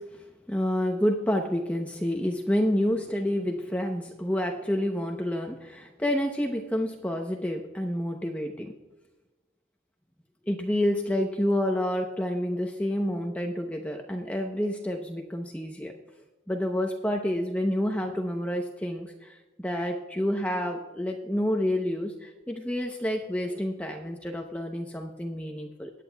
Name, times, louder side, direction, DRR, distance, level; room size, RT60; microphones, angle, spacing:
voice 1, 0.0-8.7 10.5-15.9 16.5-25.9, left 1 dB, 10° left, 2 dB, 0.7 m, -29 dB
20.0 x 9.2 x 2.3 m, 1.1 s
head